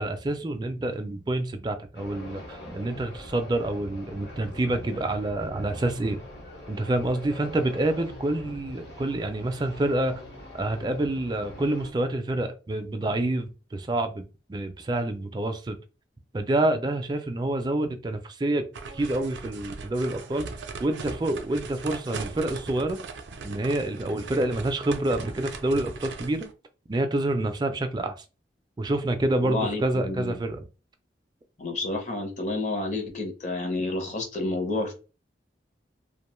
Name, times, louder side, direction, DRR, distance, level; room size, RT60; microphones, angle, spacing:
voice 1, 0.0-6.2 6.7-10.2 10.5-15.8 16.3-18.7 18.9-20.5 20.8-23.0 23.4-26.5 26.9-28.2 28.8-30.7, right 1 dB, 25° right, 0.3 m, -27 dB
sound 1, 1.9-11.9, left 1 dB, 70° left, 1.0 m, -43 dB
sound 2, 18.7-26.5, right 4 dB, 85° right, 0.4 m, -39 dB
voice 2, 29.4-30.4 31.6-34.9, left 2 dB, 40° left, 0.7 m, -30 dB
2.4 x 2.2 x 3.0 m
head